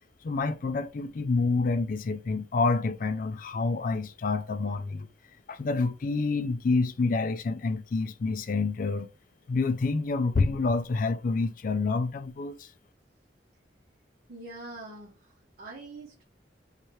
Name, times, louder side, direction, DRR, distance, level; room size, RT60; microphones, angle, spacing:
voice 1, 0.2-5.1 5.5-9.1 9.5-12.7, left 3 dB, 50° left, 0.4 m, -28 dB
voice 2, 14.3-16.2, right 2 dB, 55° right, 1.0 m, -44 dB
3.3 x 3.2 x 4.5 m
head